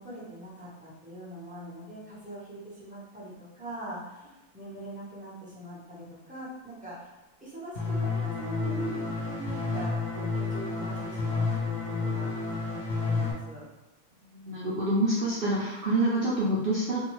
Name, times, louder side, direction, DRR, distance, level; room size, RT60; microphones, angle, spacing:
voice 1, 0.0-13.6, right 1 dB, 10° right, -9 dB, 0.6 m, -42 dB
sound 1, 7.8-13.3, left 4 dB, 55° left, 0.9 m, -30 dB
voice 2, 14.4-17.0, right 1 dB, 65° right, -7 dB, 0.5 m, -27 dB
2.6 x 2.3 x 3.0 m, 1.0 s
omnidirectional pair, 1.5 m